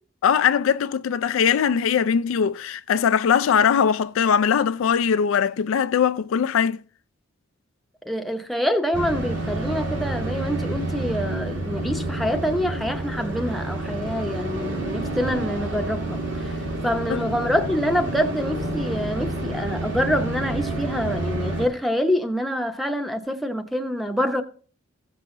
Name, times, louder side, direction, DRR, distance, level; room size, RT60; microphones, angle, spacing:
voice 1, 0.2-6.8 17.1-17.2, left 7 dB, 70° left, 0.3 m, -21 dB
voice 2, 8.1-16.2 16.8-24.4, equal, ahead, 0.7 m, -26 dB
sound 1, 8.9-21.7, right 2 dB, 60° right, 2.3 m, -29 dB
15.5 x 6.1 x 3.8 m
head